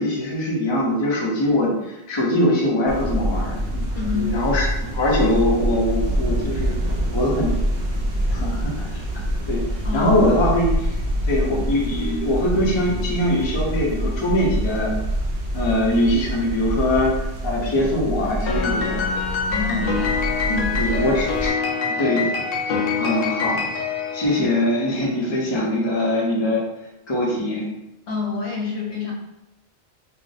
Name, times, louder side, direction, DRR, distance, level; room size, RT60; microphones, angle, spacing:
voice 1, 0.0-3.8 4.1-6.8 7.1-7.5 8.3-9.0 9.5-9.6 9.9-11.0 11.2-14.9 15.5-17.1 17.4-19.0 19.7-19.9 20.8-21.5 21.9-22.3 22.7-23.6 24.1-26.6 27.1-27.7, left 1 dB, 30° left, -3 dB, 0.6 m, -22 dB
sound 1, 2.9-21.5, equal, 55° right, 0.6 m, -26 dB
voice 2, 3.9-4.4 9.8-10.1 19.5-20.2 20.5-21.2 24.4-24.5 28.1-29.1, left 4 dB, 85° left, -2 dB, 1.0 m, -28 dB
Piano, 18.5-25.0, left 5 dB, 65° left, 0.7 m, -25 dB
2.5 x 2.0 x 3.9 m, 0.91 s
omnidirectional pair, 1.1 m